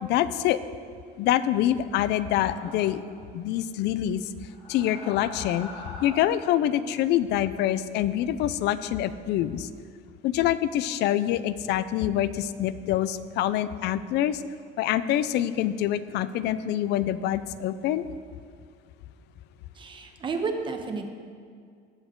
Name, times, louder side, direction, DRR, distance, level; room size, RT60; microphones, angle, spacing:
voice 1, 0.0-0.6 1.2-3.0 3.3-4.3 4.7-5.7 6.0-9.7 10.2-14.4 14.8-18.1, left 12 dB, 60° left, 15 dB, 0.5 m, -25 dB
Breath in and out, 2.0-3.2 4.4-6.6, left 2 dB, 30° left, 2.0 m, -43 dB
voice 2, 19.7-21.1, right 4 dB, 25° right, 5 dB, 0.9 m, -31 dB
18.5 x 7.3 x 3.8 m, 2.2 s
cardioid pair, 160°, 20 cm